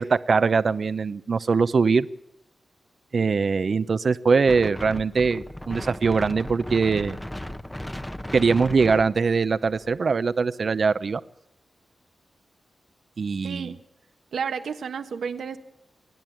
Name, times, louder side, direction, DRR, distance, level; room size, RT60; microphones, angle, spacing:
voice 1, 0.0-2.1 3.1-7.2 8.3-11.2 13.2-13.7, right 5 dB, 60° right, 14 dB, 0.7 m, -22 dB
Wind, 4.5-10.0, left 1 dB, 10° left, 0.9 m, -36 dB
voice 2, 13.4-13.8 14.3-15.6, right 6 dB, 90° right, 7 dB, 1.4 m, -31 dB
28.5 x 10.5 x 9.1 m, 0.80 s
wide cardioid pair, 80°, 0 cm